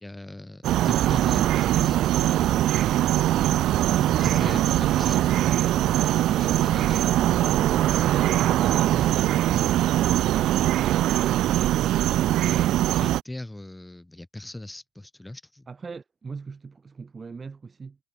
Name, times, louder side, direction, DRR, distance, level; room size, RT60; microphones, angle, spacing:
voice 1, 0.0-2.7 3.9-5.3 6.2-7.0 8.2-9.3 12.4-15.7, left 1 dB, 5° left, 1.6 m, -39 dB
sound 1, 0.6-13.2, right 14 dB, 50° right, 0.3 m, -22 dB
sound 2, 3.0-10.2, left 9 dB, 35° left, 2.2 m, -45 dB
voice 2, 15.7-18.0, right 5 dB, 20° right, 1.1 m, -40 dB
cardioid pair, 160°, 0 cm